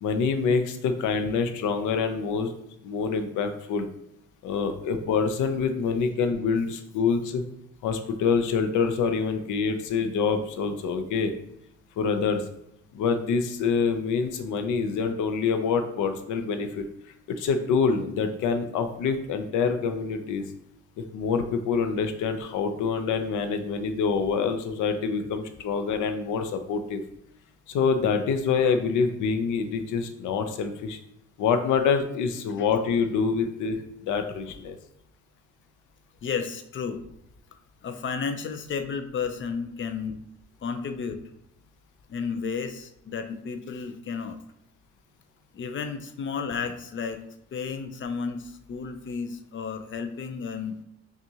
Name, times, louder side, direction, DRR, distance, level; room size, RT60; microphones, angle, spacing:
voice 1, 0.0-2.5 2.8-3.9 4.4-7.4 7.8-11.3 12.0-12.4 12.9-16.8 17.4-20.4 21.0-27.0 27.7-31.0 31.4-34.8, left 5 dB, 80° left, 7 dB, 0.6 m, -26 dB
voice 2, 36.2-37.0 37.8-40.2 40.6-41.2 42.1-44.4 45.5-47.2 47.5-50.8, left 5 dB, 40° left, 8 dB, 0.5 m, -32 dB
5.5 x 2.5 x 2.8 m, 0.81 s
cardioid pair, 90°, 30 cm